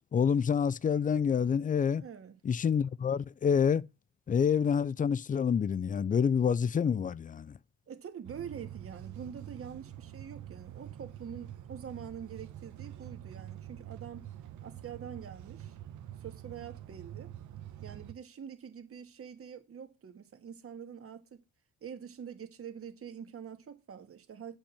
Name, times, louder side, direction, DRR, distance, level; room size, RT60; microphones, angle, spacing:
voice 1, 0.1-2.0 2.4-3.8 4.3-7.6, left 7 dB, 25° left, 0.4 m, -27 dB
voice 2, 2.0-2.4 7.9-14.3 14.6-15.8 16.2-17.3 17.8-21.4 21.8-24.6, right 7 dB, 50° right, 1.7 m, -45 dB
sound 1, 8.2-18.1, right 11 dB, 75° right, 1.1 m, -46 dB
8.7 x 5.3 x 6.9 m
cardioid pair, 90°, 30 cm